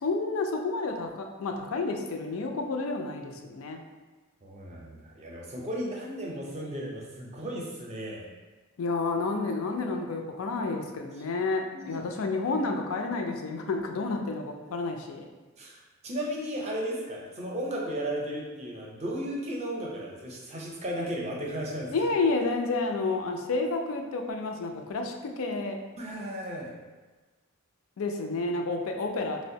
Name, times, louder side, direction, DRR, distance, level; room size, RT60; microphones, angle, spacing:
voice 1, 0.0-3.8 8.8-15.3 21.9-25.8 28.0-29.5, left 3 dB, 80° left, 3 dB, 0.4 m, -30 dB
voice 2, 4.4-8.3 11.7-12.1 15.6-21.9 26.0-26.8, equal, 30° right, -3 dB, 0.5 m, -35 dB
4.4 x 2.1 x 2.6 m, 1.3 s
head